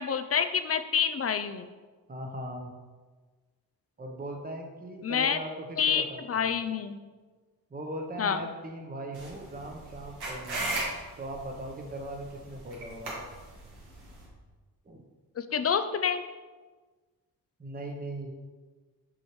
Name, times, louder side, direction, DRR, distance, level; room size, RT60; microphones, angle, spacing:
voice 1, 0.0-1.7 5.0-5.4 5.8-7.0 8.2-8.4 15.4-16.2, left 7 dB, 40° left, 10 dB, 0.4 m, -28 dB
voice 2, 2.1-2.7 4.0-6.6 7.7-10.7 11.2-13.2 14.8-15.0 17.6-18.3, right 1 dB, 25° right, 2 dB, 0.9 m, -39 dB
sound 1, 9.1-14.3, right 2 dB, 90° right, 1.9 m, -37 dB
6.2 x 5.5 x 3.1 m, 1.4 s
cardioid pair, 80°, 39 cm